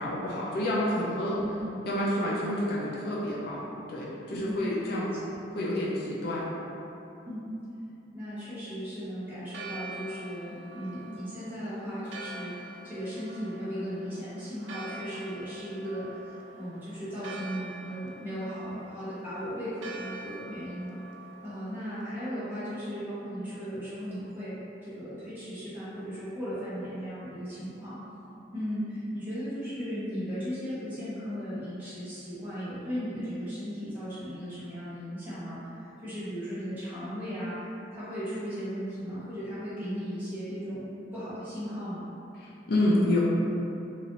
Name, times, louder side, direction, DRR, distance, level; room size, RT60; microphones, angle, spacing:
voice 1, 0.0-1.4 1.8-5.1 5.5-6.5 42.4-43.2, left 1 dB, 55° left, -6 dB, 0.4 m, -29 dB
voice 2, 1.3-1.8 4.3-5.4 7.2-7.5 8.1-21.0 21.4-24.6 24.8-28.0 28.5-37.6 37.9-42.1, equal, 10° right, -13 dB, 1.1 m, -36 dB
Church bell, 9.4-22.1, right 2 dB, 80° right, 0.3 m, -45 dB
3.0 x 2.6 x 2.7 m, 2.9 s
head